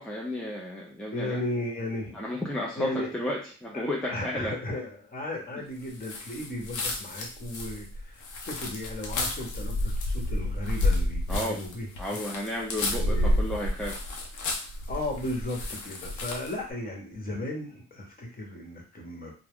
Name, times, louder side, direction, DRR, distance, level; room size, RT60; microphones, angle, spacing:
voice 1, 0.0-1.4 2.1-4.5 11.3-11.6 12.0-14.0, left 1 dB, 5° left, -3 dB, 0.5 m, -33 dB
voice 2, 1.1-2.2 2.8-3.1 3.7-12.2 13.0-13.4 14.9-19.3, left 1 dB, 30° left, 0 dB, 1.1 m, -35 dB
sound 1, 6.0-16.6, left 1 dB, 80° left, 0.8 m, -30 dB
2.4 x 2.1 x 3.5 m, 0.35 s
cardioid pair, 90°, 30 cm